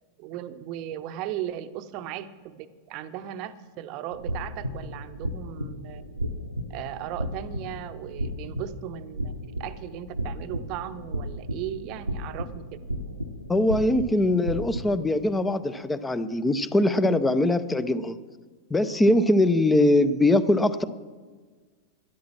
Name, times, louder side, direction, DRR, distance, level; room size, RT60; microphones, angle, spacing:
voice 1, 0.2-6.0 6.7-9.3 9.6-12.6 16.0-16.1, right 11 dB, 40° right, 12 dB, 0.8 m, -37 dB
sound 1, 4.1-14.9, equal, 90° right, 0.9 m, -34 dB
voice 2, 13.5-18.2 18.7-20.8, left 1 dB, 10° left, 14 dB, 0.6 m, -22 dB
12.5 x 11.0 x 6.0 m, 1.4 s
figure-of-eight pair, 90°, 0 cm